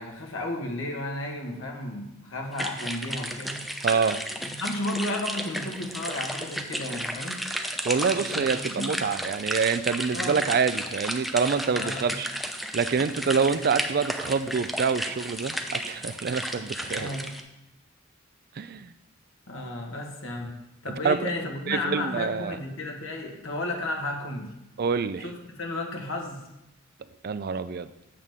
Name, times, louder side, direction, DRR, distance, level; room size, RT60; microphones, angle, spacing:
voice 1, 0.0-3.6 4.4-7.4 8.2-8.4 8.8-8.9 10.1-10.4 11.8-12.2 16.9-17.3 19.5-20.5 20.8-24.5 25.2-25.3 25.6-26.4, left 1 dB, 85° left, 0 dB, 1.6 m, -33 dB
sound 1, 2.5-17.4, equal, ahead, 0.6 m, -33 dB
voice 2, 3.8-4.2 7.8-12.3 12.7-17.1 18.6-18.9 21.0-21.3 21.7-22.6 24.8-25.2 27.2-27.9, right 5 dB, 50° right, 12 dB, 0.4 m, -26 dB
8.5 x 7.5 x 3.6 m, 0.90 s
head